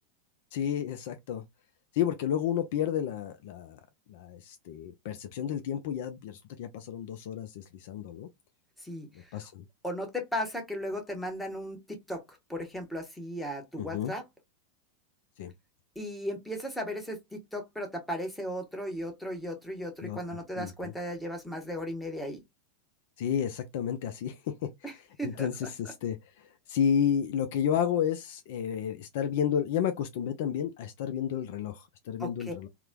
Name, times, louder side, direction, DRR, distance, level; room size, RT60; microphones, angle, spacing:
voice 1, 0.5-1.4 1.9-3.8 4.1-8.3 9.3-9.6 13.8-14.1 15.4-15.5 20.0-20.2 20.6-20.9 23.2-24.9 25.2-32.7, left 9 dB, 60° left, 0.3 m, -31 dB
voice 2, 8.8-9.5 9.8-12.2 12.5-14.2 16.0-22.4 24.8-24.9 25.2-25.7 32.2-32.5, equal, 5° left, 0.9 m, -36 dB
3.0 x 2.0 x 2.2 m
figure-of-eight pair, 90°, 0 cm